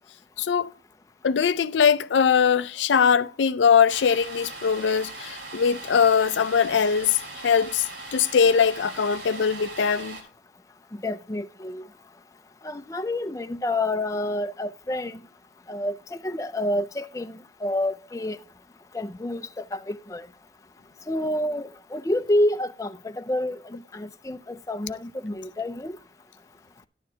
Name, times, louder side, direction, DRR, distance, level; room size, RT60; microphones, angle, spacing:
voice 1, 0.4-0.7 1.2-7.2 7.4-7.9 8.1-10.2, left 6 dB, 80° left, 0.4 m, -21 dB
Domestic sounds home sounds, 3.9-10.2, right 2 dB, 85° right, 2.8 m, -40 dB
voice 2, 11.0-11.9 12.6-15.2 15.7-18.4 18.9-20.3 21.1-26.0, left 1 dB, 20° left, 0.4 m, -28 dB
11.5 x 9.3 x 2.8 m
head